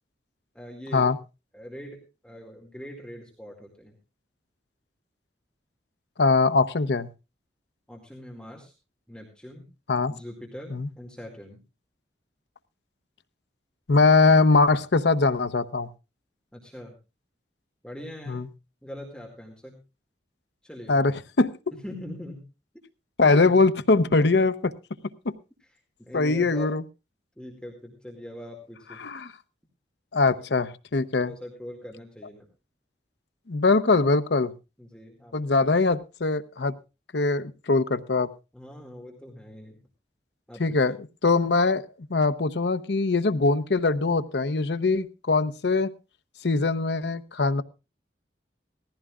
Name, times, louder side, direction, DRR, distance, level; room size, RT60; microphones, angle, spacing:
voice 1, 0.5-1.1 1.5-4.0 7.9-8.7 9.1-9.7 10.1-11.6 16.5-16.9 17.8-18.5 18.8-19.8 20.6-21.0 21.8-22.4 25.6-26.8 27.4-29.0 30.3-30.4 31.2-32.5 34.8-35.4 35.6-35.7 38.5-39.8 40.5-41.0, left 1 dB, 5° left, 0 dB, 2.1 m, -42 dB
voice 2, 6.2-7.1 9.9-10.1 10.7-10.9 13.9-15.9 18.3-18.5 20.9-21.5 23.2-24.5 26.1-26.8 29.0-29.3 30.1-31.3 33.5-34.5 35.3-36.7 37.1-38.3 40.6-40.9 41.2-45.9 46.4-47.6, left 3 dB, 75° left, 13 dB, 0.7 m, -22 dB
18.5 x 15.0 x 2.4 m, 0.28 s
head